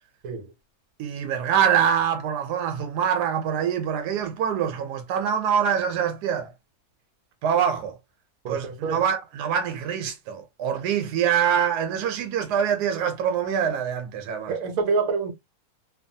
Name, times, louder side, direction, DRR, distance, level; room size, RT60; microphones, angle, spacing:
voice 1, 1.0-6.5 7.4-8.0 8.5-14.5, right 8 dB, 85° right, 1.2 m, -24 dB
voice 2, 8.4-9.0 14.5-15.3, right 4 dB, 65° right, 1.1 m, -27 dB
2.9 x 2.2 x 2.6 m
omnidirectional pair, 1.7 m